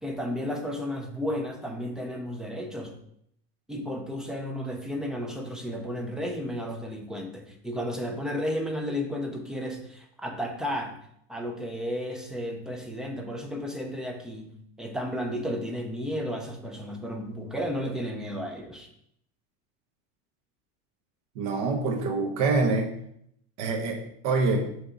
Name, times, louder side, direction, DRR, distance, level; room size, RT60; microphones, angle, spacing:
voice 1, 0.0-2.9 3.7-11.0 11.3-18.9, equal, ahead, 2 dB, 0.3 m, -33 dB
voice 2, 21.3-22.9 23.6-24.7, right 3 dB, 70° right, 1 dB, 1.3 m, -26 dB
5.5 x 3.4 x 5.0 m, 0.72 s
cardioid pair, 155°, 35 cm